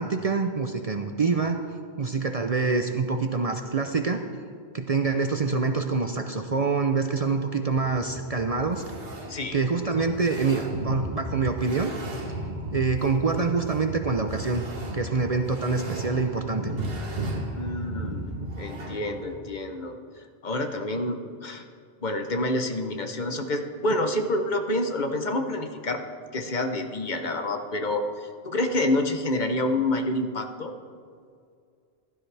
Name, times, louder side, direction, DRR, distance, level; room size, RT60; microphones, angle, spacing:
voice 1, 0.0-1.6 2.0-4.2 4.7-8.8 9.5-11.9 12.7-14.7 14.9-16.7, right 4 dB, 40° right, 5 dB, 0.6 m, -26 dB
sound 1, 7.7-19.4, right 1 dB, 60° right, 1.6 m, -35 dB
voice 2, 17.5-20.0 20.4-21.6 22.0-26.0 26.3-30.7, left 1 dB, 50° left, 6 dB, 0.9 m, -28 dB
15.5 x 12.5 x 3.3 m, 2.2 s
omnidirectional pair, 1.1 m